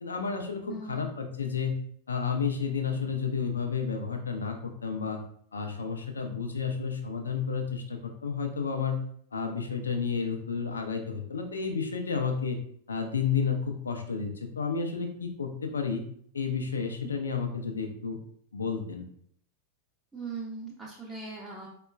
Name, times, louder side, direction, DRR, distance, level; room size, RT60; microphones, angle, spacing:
voice 1, 0.0-1.8 2.1-4.6 4.8-5.2 5.5-9.0 9.3-12.6 12.9-16.0 16.3-18.2 18.5-19.1, left 6 dB, 70° left, 4 dB, 0.5 m, -31 dB
voice 2, 0.7-1.1 20.1-21.7, right 4 dB, 5° right, -5 dB, 0.6 m, -39 dB
4.3 x 2.2 x 2.2 m, 0.63 s
figure-of-eight pair, 90°, 0 cm